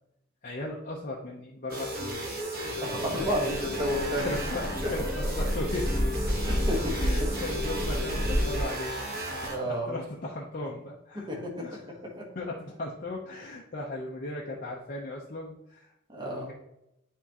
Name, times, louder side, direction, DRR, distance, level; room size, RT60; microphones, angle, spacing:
voice 1, 0.4-2.2 2.8-3.6 4.2-5.9 6.9-9.2 9.6-11.3 11.6-11.9 12.3-15.9 16.2-16.5, left 2 dB, 40° left, -3 dB, 0.7 m, -37 dB
sound 1, 1.7-9.6, right 1 dB, 45° right, 1.2 m, -35 dB
voice 2, 2.6-4.3 4.8-4.9 6.4-7.1 9.4-10.0 11.1-12.3 16.1-16.5, equal, 20° right, -1 dB, 1.3 m, -32 dB
sound 2, 2.9-8.6, equal, ahead, 1.0 m, -30 dB
9.4 x 3.7 x 2.9 m, 0.83 s
head